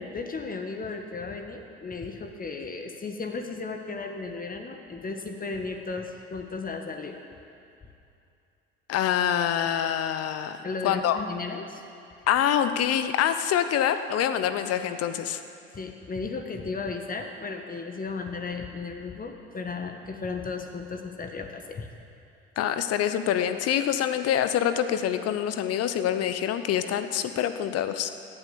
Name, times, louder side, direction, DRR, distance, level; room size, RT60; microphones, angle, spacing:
voice 1, 0.0-7.2 10.6-11.8 15.7-21.9, left 4 dB, 30° left, 4 dB, 1.5 m, -35 dB
voice 2, 8.9-11.2 12.3-15.4 22.6-28.1, left 10 dB, 50° left, 10 dB, 1.0 m, -26 dB
17.0 x 9.6 x 6.9 m, 2.6 s
figure-of-eight pair, 60°, 31 cm